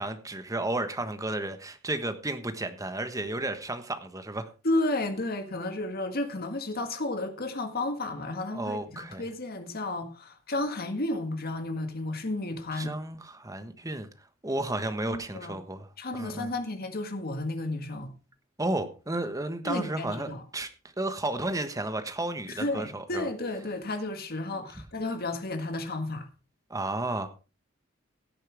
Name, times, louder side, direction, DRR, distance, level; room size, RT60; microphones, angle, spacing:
voice 1, 0.0-4.5 8.5-9.3 12.7-14.1 14.4-16.5 18.6-20.7 21.0-23.3 24.5-24.7 26.7-27.3, right 2 dB, 15° right, 1.3 m, -33 dB
voice 2, 4.6-12.9 15.1-15.6 16.0-18.1 19.7-20.4 22.5-26.3, left 2 dB, 50° left, 1.8 m, -32 dB
16.5 x 9.0 x 3.5 m
head